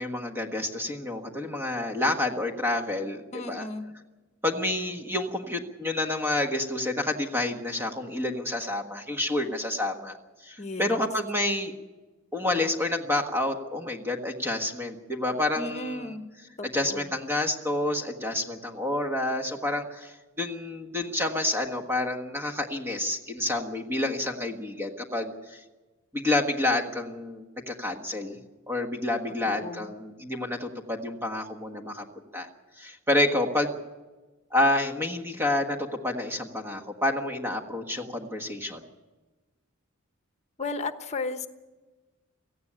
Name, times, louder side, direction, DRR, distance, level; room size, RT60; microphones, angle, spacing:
voice 1, 0.0-3.6 4.4-10.1 10.4-11.7 12.3-16.1 16.6-25.6 26.1-28.4 28.7-32.0 32.3-32.5 32.8-33.8 34.5-38.8, left 1 dB, 10° right, 4 dB, 1.5 m, -29 dB
voice 2, 3.3-3.9 10.6-11.0 15.5-16.3 16.6-17.1 29.4-29.9 40.6-41.5, left 3 dB, 35° left, 9 dB, 1.1 m, -35 dB
17.5 x 15.0 x 10.0 m, 1.2 s
head